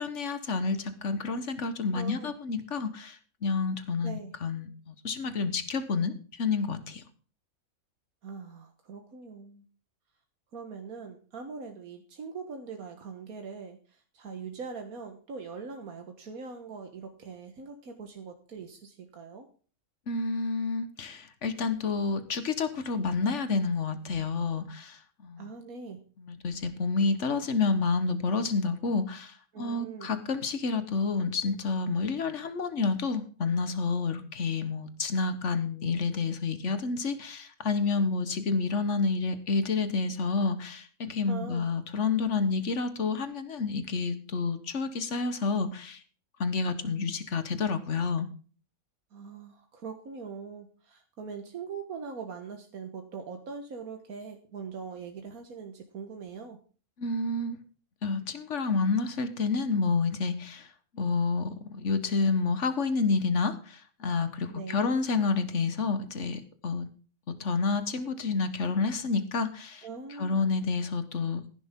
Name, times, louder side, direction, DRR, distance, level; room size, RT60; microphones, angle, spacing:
voice 1, 0.0-7.0 20.1-25.5 26.2-46.0 46.4-48.3 57.0-57.6 58.0-60.7 60.9-66.9 67.4-69.8 70.2-71.4, left 4 dB, 55° left, 11 dB, 1.6 m, -29 dB
voice 2, 1.9-2.3 4.0-4.3 8.2-9.7 10.5-19.5 25.4-26.0 29.5-30.1 41.3-41.7 49.1-56.6 64.5-65.0 69.8-70.4, right 5 dB, 85° right, 4 dB, 1.8 m, -42 dB
15.5 x 11.0 x 3.7 m, 0.40 s
omnidirectional pair, 1.5 m